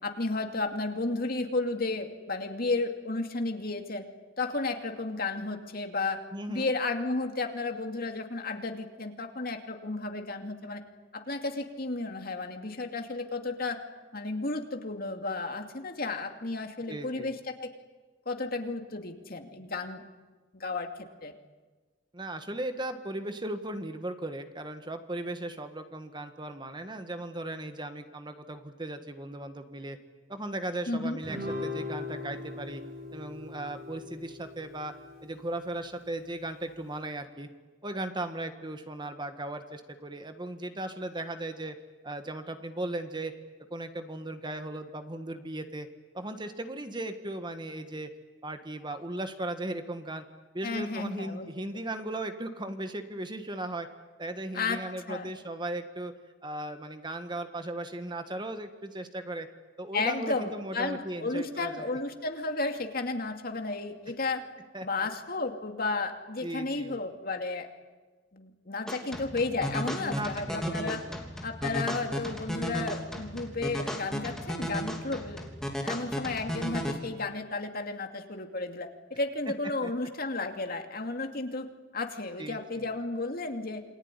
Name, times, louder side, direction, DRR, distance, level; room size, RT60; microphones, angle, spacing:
voice 1, 0.0-4.0 4.4-6.2 6.5-10.8 11.1-13.8 14.1-17.7 18.3-20.0 20.5-20.9 21.2-21.3 30.9-31.2 50.6-51.5 54.5-54.8 55.1-55.3 59.9-64.4 64.8-67.7 68.3-71.0 71.4-75.5 75.8-81.7 81.9-83.8, left 3 dB, 50° left, 5 dB, 2.5 m, -33 dB
voice 2, 6.3-6.7 16.9-17.3 22.1-30.0 30.3-32.8 33.1-34.9 35.2-37.5 37.8-41.7 42.0-43.3 43.7-45.9 46.1-48.1 48.4-50.2 50.5-53.9 54.2-56.1 56.4-59.5 59.8-62.0 64.7-64.9 66.4-67.0 69.9-71.2 79.8-79.9 82.4-82.9, right 1 dB, 25° right, 8 dB, 1.6 m, -37 dB
Guitar, 31.2-35.8, left 3 dB, 50° right, 6.8 m, -40 dB
sound 1, 68.9-76.9, equal, 5° left, 3.2 m, -34 dB
28.0 x 21.0 x 9.9 m, 1.3 s
head